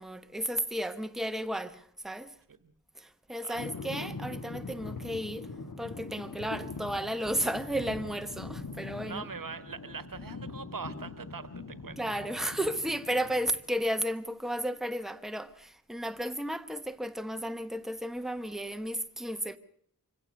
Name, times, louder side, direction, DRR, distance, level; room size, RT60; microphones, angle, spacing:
voice 1, 0.0-2.3 3.0-5.5 5.8-9.2 12.0-19.6, equal, ahead, 1.1 m, -33 dB
sound 1, 3.6-13.6, left 3 dB, 65° left, 1.7 m, -42 dB
voice 2, 9.0-12.0, right 5 dB, 75° right, 1.3 m, -42 dB
24.5 x 16.5 x 6.5 m
wide cardioid pair, 60°, 34 cm